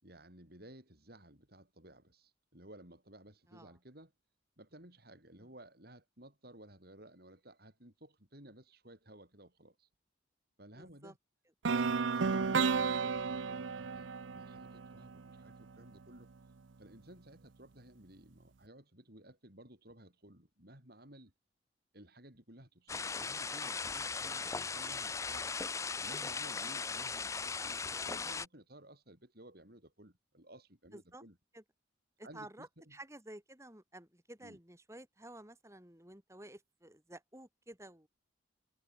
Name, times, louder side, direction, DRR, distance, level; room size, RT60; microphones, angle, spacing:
voice 1, 0.0-4.1 4.6-9.9 10.6-11.2 11.7-16.3 16.8-21.3 21.9-25.5 26.0-31.4 32.2-33.0 34.4-34.6, right 1 dB, 50° right, 6.6 m, -56 dB
voice 2, 10.8-11.1 30.9-31.2 31.5-31.6 32.2-38.1, right 1 dB, 15° right, 2.9 m, -52 dB
sound 1, 11.6-15.6, right 5 dB, 75° right, 0.6 m, -33 dB
sound 2, 22.9-28.5, left 5 dB, 15° left, 0.4 m, -38 dB
head